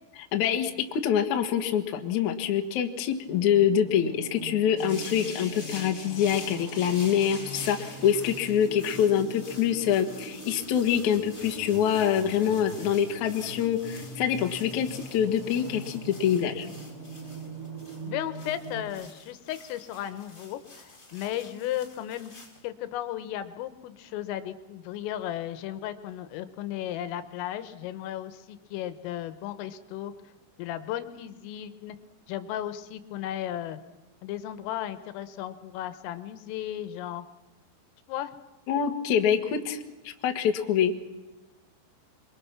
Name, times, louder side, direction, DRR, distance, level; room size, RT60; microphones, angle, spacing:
voice 1, 0.3-16.7 38.7-40.9, left 9 dB, 65° left, 5 dB, 1.9 m, -25 dB
sound 1, 3.3-18.9, right 2 dB, 35° right, 4.6 m, -42 dB
sound 2, 4.8-22.6, left 2 dB, 20° left, 1.3 m, -46 dB
voice 2, 18.0-22.3 22.6-30.1 30.6-32.0 32.3-33.8 34.2-37.3 38.1-38.3, left 12 dB, 80° left, 11 dB, 3.6 m, -35 dB
28.0 x 23.0 x 6.0 m, 1.1 s
omnidirectional pair, 5.9 m